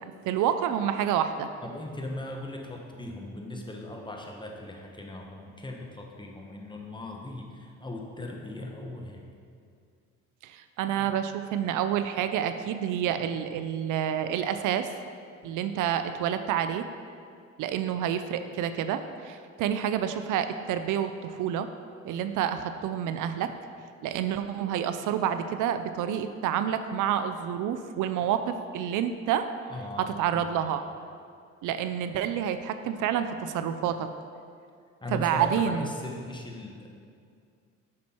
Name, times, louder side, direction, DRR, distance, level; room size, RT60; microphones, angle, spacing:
voice 1, 0.3-1.5 10.4-14.9 15.4-16.9 17.6-21.7 22.0-23.5 24.0-29.5 30.0-30.8 31.6-34.1 35.1-35.9, right 9 dB, 80° right, 9 dB, 0.5 m, -28 dB
voice 2, 1.6-9.2 11.0-11.1 13.1-13.2 29.7-30.7 35.0-36.9, left 1 dB, 15° left, 0 dB, 1.1 m, -39 dB
7.4 x 6.1 x 4.4 m, 2.3 s
cardioid pair, 90°, 31 cm